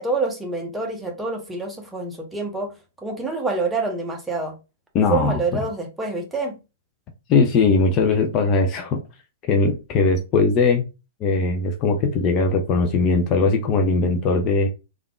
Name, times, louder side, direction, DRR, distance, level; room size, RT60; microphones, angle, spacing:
voice 1, 0.0-2.7 3.0-4.5 5.1-6.6, right 3 dB, 5° right, 0.8 m, -27 dB
voice 2, 4.9-5.4 7.3-9.0 9.5-10.8 11.2-14.7, left 4 dB, 30° left, 0.5 m, -19 dB
3.4 x 2.3 x 2.3 m
figure-of-eight pair, 110°, 0 cm